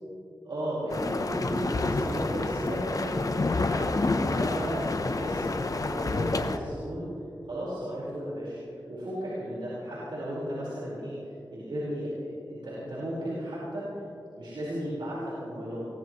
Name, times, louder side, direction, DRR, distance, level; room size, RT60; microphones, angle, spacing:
voice 1, 0.4-3.9 4.2-7.1 7.5-14.0 14.4-15.8, equal, 85° right, -9 dB, 4.9 m, -34 dB
sound 1, 0.9-6.6, left 3 dB, 45° left, 0.9 m, -29 dB
22.5 x 18.0 x 3.2 m, 2.7 s
wide cardioid pair, 65°, 8 cm